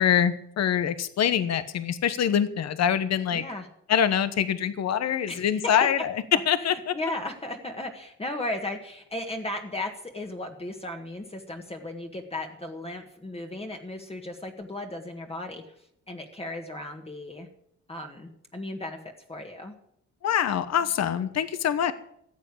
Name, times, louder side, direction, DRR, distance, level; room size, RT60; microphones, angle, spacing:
voice 1, 0.0-3.4 3.9-6.1 6.5-6.9 20.2-21.9, left 9 dB, 60° left, 13 dB, 1.1 m, -24 dB
voice 2, 3.3-3.7 5.3-5.9 6.6-17.5 17.9-19.0 19.3-19.7, left 1 dB, 20° left, 3 dB, 1.7 m, -36 dB
14.5 x 8.0 x 8.5 m, 0.73 s
cardioid pair, 90°, 30 cm